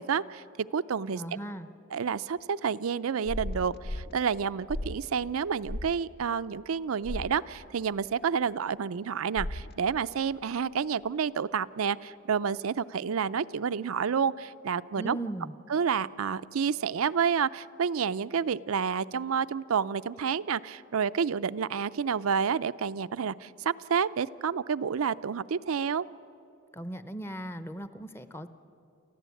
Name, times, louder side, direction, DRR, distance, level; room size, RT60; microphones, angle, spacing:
voice 1, 0.0-1.2 1.9-15.2 15.7-26.0, right 6 dB, 85° right, 14 dB, 0.5 m, -29 dB
voice 2, 1.1-1.7 15.0-15.5 26.7-28.5, right 1 dB, 10° left, 11 dB, 0.8 m, -38 dB
sound 1, 3.3-4.1 4.7-5.1 5.7-5.9 7.0-7.3 9.4-9.7, left 1 dB, 50° left, 0.7 m, -35 dB
28.5 x 15.0 x 8.4 m, 2.8 s
head